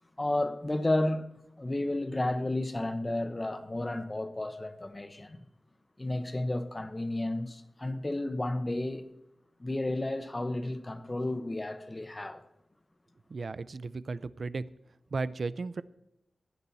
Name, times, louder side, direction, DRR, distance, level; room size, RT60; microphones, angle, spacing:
voice 1, 0.2-1.3 1.6-5.4 6.0-9.1 9.6-12.4, left 1 dB, 20° left, 0.9 m, -32 dB
voice 2, 13.3-14.6 15.1-15.8, right 3 dB, 60° right, 0.4 m, -35 dB
16.0 x 9.9 x 4.1 m
wide cardioid pair, 130°, 0 cm